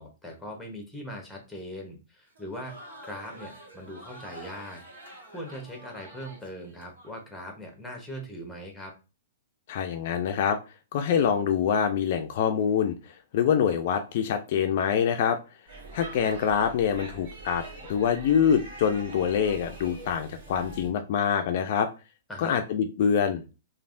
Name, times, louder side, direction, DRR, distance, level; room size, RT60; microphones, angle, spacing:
voice 1, 0.0-2.8 3.0-4.8 5.3-8.9 22.3-22.6, equal, 5° left, 2 dB, 1.0 m, -40 dB
Crowd, 2.3-7.1, right 1 dB, 80° right, 1.4 m, -47 dB
voice 2, 9.7-10.6 10.9-15.4 15.9-21.9 22.4-23.4, left 7 dB, 55° left, 6 dB, 0.4 m, -25 dB
Speech / Shout / Subway metro underground, 15.7-20.9, right 2 dB, 60° right, 1.5 m, -43 dB
3.2 x 2.4 x 2.5 m, 0.30 s
hypercardioid pair, 130°, 0 cm